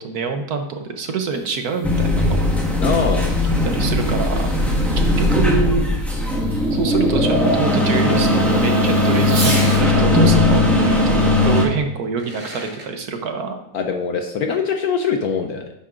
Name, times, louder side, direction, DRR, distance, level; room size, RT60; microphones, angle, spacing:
voice 1, 0.0-2.4 3.6-4.5 5.0-5.8 6.7-13.6, right 5 dB, 60° right, 5 dB, 1.2 m, -26 dB
Fireworks, 1.0-9.9 11.4-11.5 12.0-12.9, right 1 dB, 45° right, 2.5 m, -36 dB
sound 1, 1.8-11.6, left 1 dB, ahead, 1.3 m, -18 dB
voice 2, 2.8-3.3 13.7-15.7, left 6 dB, 65° left, 5 dB, 1.0 m, -22 dB
10.5 x 8.4 x 2.5 m, 0.84 s
omnidirectional pair, 2.1 m